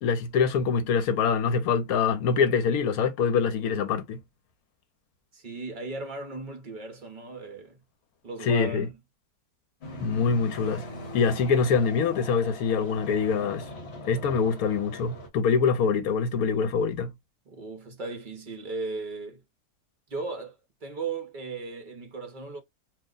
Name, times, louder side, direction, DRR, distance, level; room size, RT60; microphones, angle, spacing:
voice 1, 0.0-4.2 8.5-8.9 10.0-10.8 11.1-13.6 14.1-17.1, left 6 dB, 70° left, 1.1 m, -24 dB
voice 2, 5.3-7.8 8.2-9.0 17.5-19.4 20.1-22.6, right 3 dB, 40° right, 0.7 m, -37 dB
sound 1, 9.8-15.3, left 1 dB, 45° left, 1.1 m, -41 dB
2.7 x 2.1 x 3.7 m
omnidirectional pair, 1.7 m